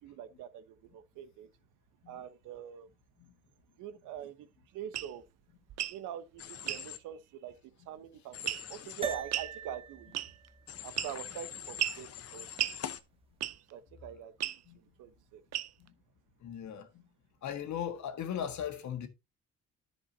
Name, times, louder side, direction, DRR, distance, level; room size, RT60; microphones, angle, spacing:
voice 1, 0.0-1.5 2.1-2.9 3.8-5.2 5.9-8.4 8.7-10.2 10.8-12.5 13.7-15.4, right 10 dB, 90° right, 1.1 m, -44 dB
sound 1, 4.9-5.1 5.7-6.0 6.7-6.8 8.5-8.8 9.3-9.5 10.1-10.5 11.0-11.3 11.8-12.0 12.6-12.8 13.4-13.7 14.4-14.6 15.5-15.9, right 12 dB, 60° right, 0.6 m, -34 dB
Human voice / Train, 6.4-7.0 8.3-9.2 10.7-13.0, left 9 dB, 55° left, 0.9 m, -44 dB
sound 2, 9.0-13.6, right 5 dB, 20° right, 1.6 m, -45 dB
voice 2, 16.4-17.1 17.4-19.1, left 9 dB, 70° left, 1.7 m, -38 dB
10.0 x 7.1 x 2.8 m
cardioid pair, 90°, 30 cm